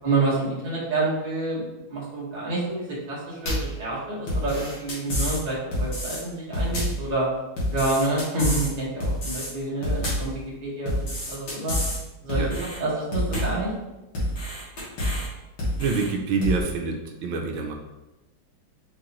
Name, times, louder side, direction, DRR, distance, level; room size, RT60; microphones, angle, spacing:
voice 1, 0.0-1.6 1.9-7.3 7.7-10.9 11.3-11.8 12.2-12.4 12.8-13.7, right 2 dB, 25° right, -7 dB, 1.2 m, -28 dB
sound 1, 3.5-3.8 4.3-5.4 5.7-6.2 6.5-7.0 7.6-8.7 9.0-9.5 9.8-10.3 10.9-12.0 12.3-12.8 13.1-13.6 14.1-15.3 15.6-16.1 16.4-16.6, equal, 70° left, 2.3 m, -27 dB
voice 2, 15.8-17.7, right 4 dB, 85° right, 3 dB, 1.4 m, -26 dB
4.6 x 3.7 x 3.0 m, 1.0 s
omnidirectional pair, 2.3 m